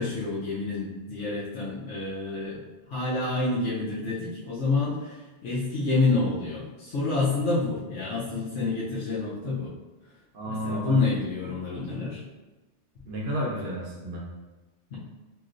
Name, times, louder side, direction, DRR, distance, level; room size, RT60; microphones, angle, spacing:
voice 1, 0.0-2.6 2.9-5.2 5.4-9.7 10.5-12.2 14.9-15.0, left 3 dB, 80° left, -9 dB, 1.1 m, -28 dB
voice 2, 10.3-11.0 13.1-14.2, equal, 60° right, -3 dB, 0.9 m, -31 dB
3.1 x 3.0 x 2.5 m, 1.2 s
omnidirectional pair, 1.2 m